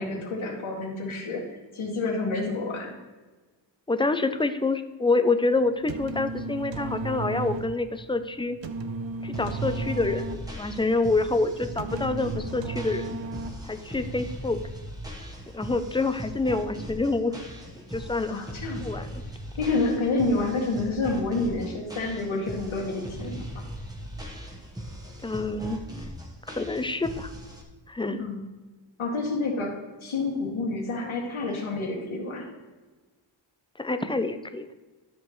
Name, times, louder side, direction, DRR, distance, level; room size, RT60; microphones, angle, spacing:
voice 1, 0.0-1.4 1.7-3.0 18.3-19.1 19.6-23.6 28.2-28.4 29.0-32.5, left 3 dB, 90° left, -2 dB, 2.3 m, -29 dB
voice 2, 3.9-8.6 9.2-13.2 13.7-14.6 15.5-17.3 17.8-18.4 18.8-19.1 25.2-25.8 26.5-27.3 27.9-28.3 33.8-34.7, left 3 dB, 10° left, 10 dB, 0.4 m, -27 dB
sound 1, 5.7-13.9, right 3 dB, 70° right, 0.8 m, -35 dB
sound 2, 9.3-27.6, equal, 10° right, 1.2 m, -39 dB
12.5 x 6.7 x 3.1 m, 1.3 s
wide cardioid pair, 155°, 47 cm